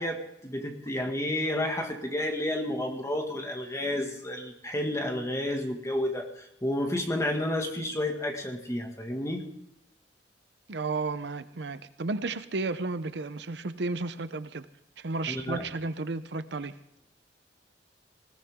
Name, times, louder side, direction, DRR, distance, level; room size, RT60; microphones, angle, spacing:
voice 1, 0.0-9.4 15.3-15.6, left 1 dB, 15° left, 3 dB, 1.9 m, -31 dB
voice 2, 10.7-14.7 15.0-16.8, right 3 dB, 65° right, 12 dB, 0.7 m, -33 dB
20.0 x 16.5 x 3.7 m, 0.81 s
head